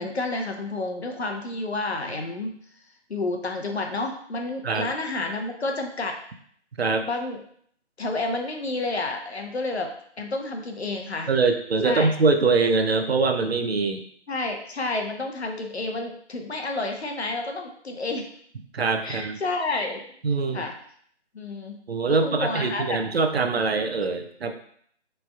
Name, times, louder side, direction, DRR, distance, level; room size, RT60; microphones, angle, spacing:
voice 1, 0.0-2.6 3.1-6.2 7.0-7.4 8.0-9.9 10.2-11.3 11.8-12.1 14.3-18.3 19.0-20.1 20.5-20.7 21.3-21.8 22.2-23.0, left 2 dB, 65° left, 3 dB, 0.7 m, -30 dB
voice 2, 11.3-14.0 18.7-19.4 20.2-20.6 21.9-24.5, right 4 dB, 60° right, 6 dB, 0.6 m, -23 dB
4.1 x 3.3 x 2.3 m, 0.63 s
figure-of-eight pair, 155°, 35 cm